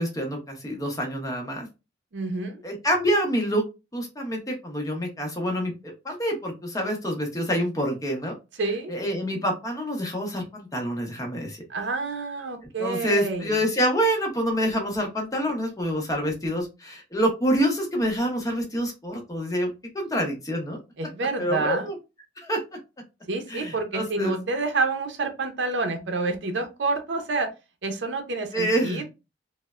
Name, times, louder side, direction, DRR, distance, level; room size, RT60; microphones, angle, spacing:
voice 1, 0.0-1.7 2.6-3.6 3.9-8.4 8.9-11.6 12.8-20.8 21.4-22.0 22.4-22.6 23.5-24.4 28.5-29.0, equal, 20° left, 2 dB, 0.7 m, -27 dB
voice 2, 2.1-2.6 8.6-9.0 11.7-13.5 21.0-21.9 23.3-27.5 27.8-29.0, right 3 dB, 65° right, 5 dB, 0.5 m, -28 dB
3.1 x 2.0 x 2.3 m, 0.27 s
head